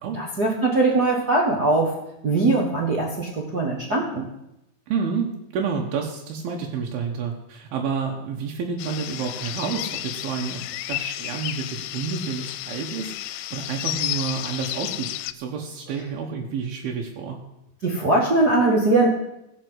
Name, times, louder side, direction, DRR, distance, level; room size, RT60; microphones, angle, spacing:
voice 1, 0.2-1.9 2.2-4.3 17.8-19.1, right 2 dB, 50° right, -2 dB, 1.2 m, -21 dB
voice 2, 4.9-10.6 10.9-15.1 15.3-17.4, right 6 dB, 80° right, 1 dB, 3.0 m, -29 dB
sound 1, 8.8-15.3, left 15 dB, 85° left, 2.4 m, -32 dB
16.0 x 6.2 x 7.9 m, 0.87 s
omnidirectional pair, 4.2 m